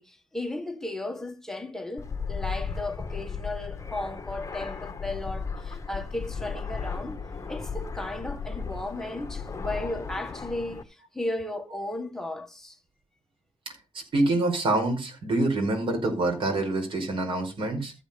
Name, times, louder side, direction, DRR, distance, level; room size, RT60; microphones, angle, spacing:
voice 1, 0.0-7.2 7.5-12.8, left 1 dB, 5° left, 1.6 m, -35 dB
Fixed-wing aircraft airplane, 2.0-10.8, left 5 dB, 30° left, 1.6 m, -35 dB
voice 2, 13.9-17.9, right 2 dB, 55° right, 5.2 m, -26 dB
14.0 x 5.0 x 5.2 m
cardioid pair, 85°, 10 cm